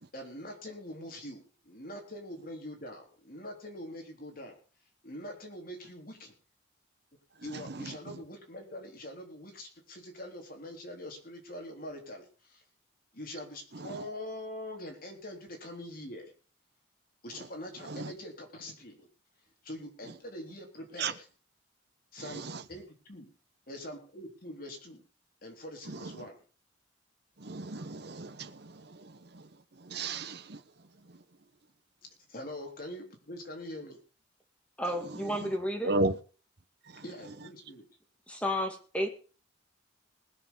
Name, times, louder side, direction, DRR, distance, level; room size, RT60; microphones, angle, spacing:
voice 1, 0.1-4.6 5.0-6.3 7.4-12.6 13.1-16.3 17.2-19.0 19.6-21.1 22.1-22.4 22.7-23.3 23.7-25.0 25.4-26.4 32.3-33.9 37.0-37.9, left 1 dB, 50° left, 3.6 m, -43 dB
voice 2, 7.3-8.2 13.7-14.1 17.3-17.5 17.8-18.1 20.0-20.1 21.0-21.2 22.2-22.6 25.8-26.3 27.4-31.2 35.0-35.6 35.8-36.2 36.8-37.5, right 2 dB, 60° right, 1.0 m, -37 dB
voice 3, 34.8-35.9 38.3-39.1, equal, 5° left, 2.1 m, -32 dB
20.0 x 6.9 x 5.3 m
head